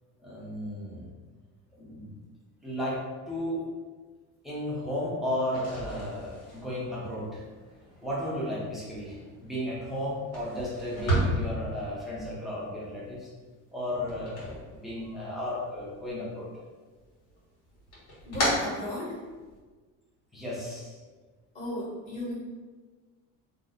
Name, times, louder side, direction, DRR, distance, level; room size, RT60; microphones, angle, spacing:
voice 1, 0.2-1.1 1.8-2.1 2.6-3.0 3.3-3.6 4.4-7.4 8.0-13.3 13.7-16.5 20.3-21.0, left 1 dB, ahead, -7 dB, 0.6 m, -34 dB
sound 1, 5.4-15.4 15.7-16.6 17.0-19.6, right 1 dB, 60° left, 1.5 m, -35 dB
voice 2, 18.2-19.2 21.5-22.3, left 1 dB, 20° left, -10 dB, 1.5 m, -34 dB
2.6 x 2.1 x 3.6 m, 1.4 s
cardioid pair, 150°, 32 cm